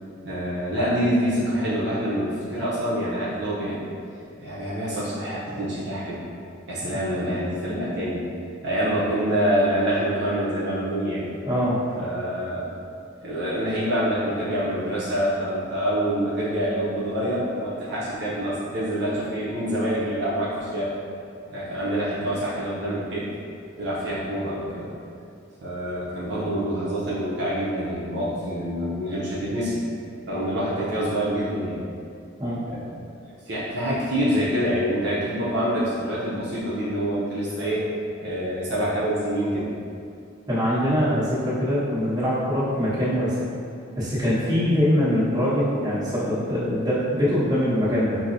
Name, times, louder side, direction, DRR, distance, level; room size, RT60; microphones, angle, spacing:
voice 1, 0.2-3.8 4.4-6.3 6.7-8.3 8.6-11.3 12.0-12.7 13.2-20.9 21.5-23.3 23.8-24.9 25.6-29.8 30.2-31.8 32.7-32.9 33.4-37.8 38.2-39.7, equal, 60° right, -9 dB, 0.6 m, -26 dB
voice 2, 11.4-11.8 32.4-32.6 40.5-43.3 44.0-48.2, equal, 20° right, -12 dB, 1.2 m, -23 dB
5.8 x 2.0 x 2.6 m, 2.4 s
head